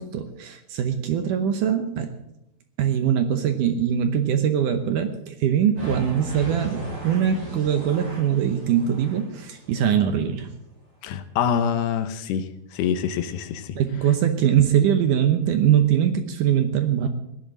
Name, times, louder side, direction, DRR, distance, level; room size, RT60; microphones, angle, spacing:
voice 1, 0.0-2.1 2.8-10.5 13.8-17.1, right 9 dB, 70° right, 7 dB, 2.0 m, -22 dB
sound 1, 5.8-10.2, equal, 25° right, 6.5 m, -37 dB
voice 2, 11.0-12.5 12.7-13.8, left 8 dB, 85° left, 9 dB, 3.0 m, -25 dB
17.0 x 11.0 x 6.2 m, 0.85 s
omnidirectional pair, 4.6 m